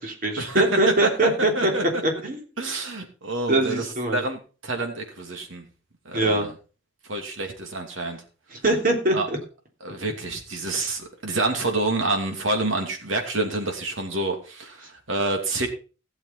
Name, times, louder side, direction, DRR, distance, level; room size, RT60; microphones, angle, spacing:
voice 1, 0.0-2.4 3.5-4.2 6.1-6.5 8.5-9.4 10.8-10.9, right 1 dB, 45° right, 1 dB, 3.2 m, -23 dB
voice 2, 1.5-2.2 2.6-3.8 4.1-5.7 6.0-6.5 7.1-8.2 9.1-9.3 9.8-15.7, right 2 dB, 85° right, 3 dB, 2.8 m, -28 dB
16.5 x 7.2 x 4.4 m, 0.35 s
head